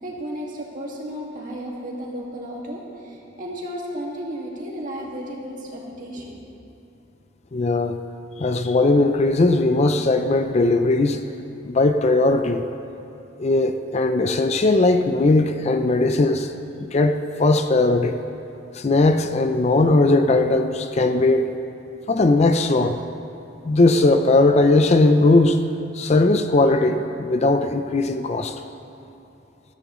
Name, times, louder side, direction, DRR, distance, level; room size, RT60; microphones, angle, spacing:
voice 1, 0.0-6.4, equal, 45° right, -3 dB, 2.0 m, -33 dB
voice 2, 7.5-8.0 8.4-11.2 11.6-12.6 13.4-16.5 16.8-18.2 18.7-21.5 22.1-23.0 23.6-25.6 25.9-28.6, left 2 dB, 35° left, 7 dB, 0.4 m, -18 dB
14.0 x 13.5 x 3.1 m, 2.9 s
head